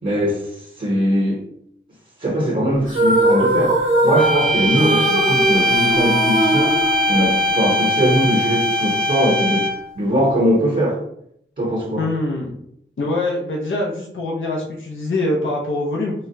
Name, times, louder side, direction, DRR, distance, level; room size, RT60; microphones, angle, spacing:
voice 1, 0.0-1.4 2.2-6.8 7.1-11.0 11.6-12.1, equal, 45° right, -2 dB, 0.8 m, -21 dB
sound 1, 2.9-7.7, right 1 dB, 90° right, 1.2 m, -20 dB
sound 2, 4.2-9.9, equal, 5° left, 0.5 m, -20 dB
voice 2, 12.0-12.4 13.0-16.1, left 2 dB, 85° left, -3 dB, 0.6 m, -23 dB
4.0 x 2.1 x 2.6 m, 0.73 s
cardioid pair, 40°, 20 cm